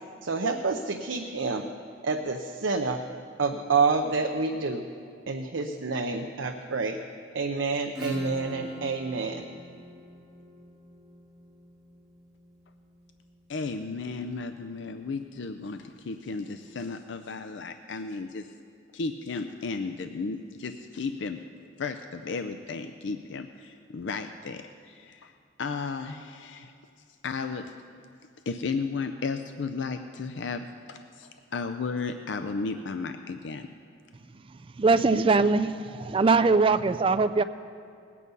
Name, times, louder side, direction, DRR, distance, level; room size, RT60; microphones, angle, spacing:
voice 1, 0.2-1.7 2.0-3.0 3.4-4.8 5.3-7.0 7.3-9.4, right 4 dB, 75° right, 4 dB, 0.7 m, -28 dB
Acoustic guitar / Strum, 8.0-13.3, right 1 dB, ahead, 2.7 m, -39 dB
voice 2, 13.5-18.5 18.9-21.4 21.8-26.7 27.2-27.7 28.5-33.7, left 4 dB, 65° left, 8 dB, 0.5 m, -34 dB
voice 3, 34.8-37.4, right 4 dB, 25° right, 12 dB, 0.4 m, -22 dB
19.5 x 8.5 x 5.4 m, 2.4 s
head